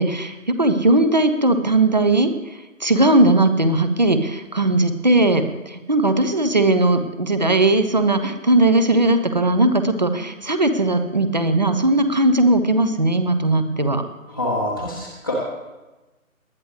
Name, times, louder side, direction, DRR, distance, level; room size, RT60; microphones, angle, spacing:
voice 1, 0.0-14.0, right 2 dB, 30° right, 9 dB, 0.7 m, -18 dB
voice 2, 14.3-15.3, left 1 dB, 15° left, -5 dB, 0.8 m, -26 dB
19.5 x 11.5 x 3.2 m, 1.1 s
figure-of-eight pair, 155°, 42 cm